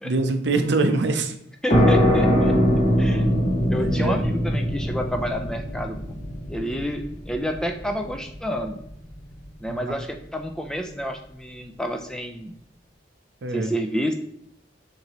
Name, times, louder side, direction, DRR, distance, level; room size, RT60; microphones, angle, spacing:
voice 1, 0.0-1.3 3.8-4.1 9.7-9.8 13.4-13.7, right 3 dB, 65° right, 7 dB, 0.5 m, -23 dB
voice 2, 1.6-2.5 3.0-3.3 3.7-6.0 6.5-8.8 9.6-12.5 13.5-14.1, equal, 5° left, 4 dB, 0.3 m, -29 dB
sound 1, 1.7-9.1, equal, 40° left, 1.0 m, -22 dB
6.5 x 2.7 x 3.0 m, 0.72 s
head